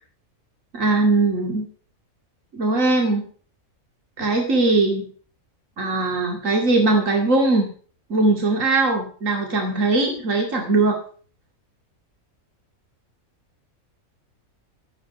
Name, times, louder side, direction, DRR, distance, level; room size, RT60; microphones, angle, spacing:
voice 1, 0.7-1.7 2.5-3.2 4.2-5.1 5.8-7.7 8.1-11.0, right 2 dB, 65° right, 2 dB, 2.8 m, -20 dB
14.5 x 10.5 x 6.8 m, 0.43 s
omnidirectional pair, 1.5 m